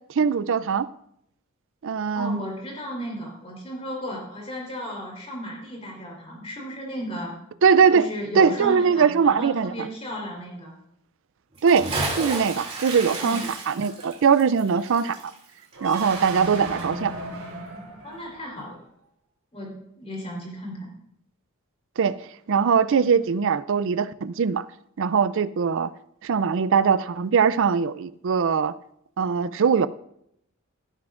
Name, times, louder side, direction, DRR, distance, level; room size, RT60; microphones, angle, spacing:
voice 1, 0.2-0.9 1.8-2.4 7.6-8.1 8.4-9.9 11.6-11.9 12.2-15.3 15.8-17.1 22.0-24.6 25.0-25.9 26.2-28.7 29.2-29.9, right 6 dB, 60° right, 0.4 m, -21 dB
voice 2, 2.1-7.3 7.9-10.7 13.2-13.4 18.0-18.8 19.5-20.9, equal, 25° left, 3.8 m, -34 dB
Bathtub (filling or washing) / Splash splatter, 11.5-16.5 16.8-16.9, right 2 dB, 25° right, 2.7 m, -32 dB
sound 1, 15.7-18.7, right 1 dB, 90° right, 4.1 m, -35 dB
17.0 x 9.6 x 2.5 m
head